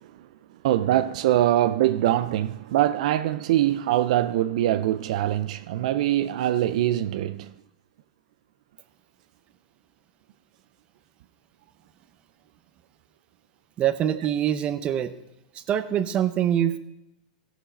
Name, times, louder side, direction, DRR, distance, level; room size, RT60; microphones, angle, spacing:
voice 1, 0.6-7.5, right 13 dB, 65° right, 0.5 m, -23 dB
voice 2, 13.8-15.1 15.5-16.8, right 10 dB, 30° right, 0.7 m, -24 dB
16.0 x 6.1 x 5.6 m
supercardioid pair, 140°, 4 cm